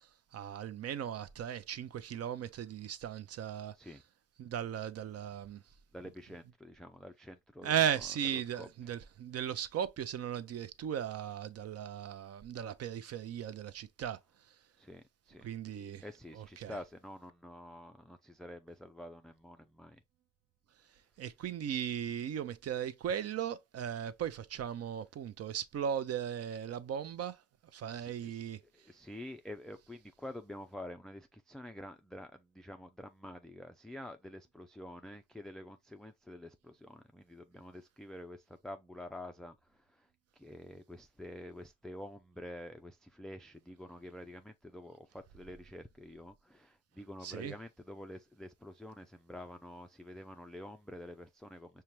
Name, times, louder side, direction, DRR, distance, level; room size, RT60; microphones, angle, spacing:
voice 1, 0.3-3.7 4.4-5.6 7.6-14.2 15.4-16.0 16.3-16.8 21.2-27.4 27.7-28.6 47.2-47.5, right 9 dB, 55° right, 0.5 m, -37 dB
voice 2, 5.9-7.7 8.6-8.7 14.8-15.5 16.0-20.0 27.9-40.1 40.4-51.8, left 1 dB, ahead, 0.3 m, -48 dB
5.6 x 2.2 x 3.1 m
cardioid pair, 90°, 30 cm